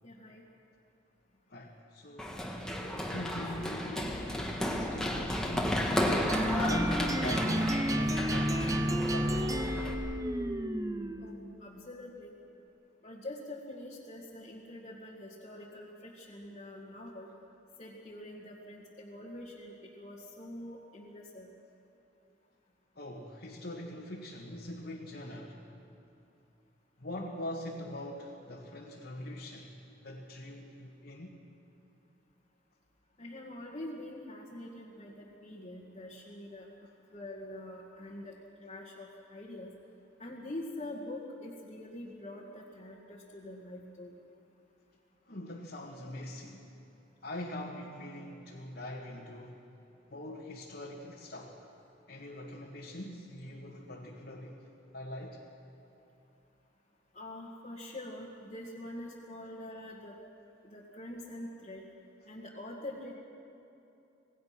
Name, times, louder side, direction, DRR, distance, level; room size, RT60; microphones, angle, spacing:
voice 1, 0.0-0.4 11.2-12.3 13.0-17.3 17.8-21.5 33.2-36.7 37.1-38.3 38.6-39.7 40.2-44.1 57.1-60.1 60.6-61.8 62.3-63.1, left 1 dB, 35° left, -6 dB, 2.0 m, -45 dB
voice 2, 1.5-2.4 2.8-5.8 6.4-9.4 23.0-25.6 27.0-31.4 45.3-46.7 47.2-49.7 50.1-51.6 52.1-54.6 54.9-55.4, left 1 dB, 55° left, -3 dB, 2.0 m, -42 dB
Run, 2.2-9.9, equal, 5° left, 1.9 m, -33 dB
sound 1, 6.3-11.4, equal, 15° right, 0.8 m, -31 dB
26.5 x 19.0 x 6.0 m, 2.8 s
head